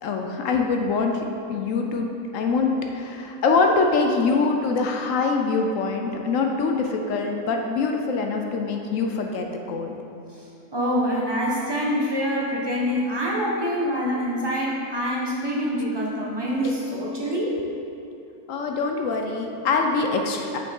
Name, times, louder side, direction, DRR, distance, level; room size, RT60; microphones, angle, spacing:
voice 1, 0.0-1.2 1.5-2.1 2.3-10.0 18.5-20.6, left 4 dB, 70° left, 3 dB, 0.9 m, -24 dB
voice 2, 10.7-17.5, equal, 20° right, -4 dB, 0.8 m, -25 dB
7.0 x 5.5 x 3.6 m, 2.7 s
omnidirectional pair, 1.6 m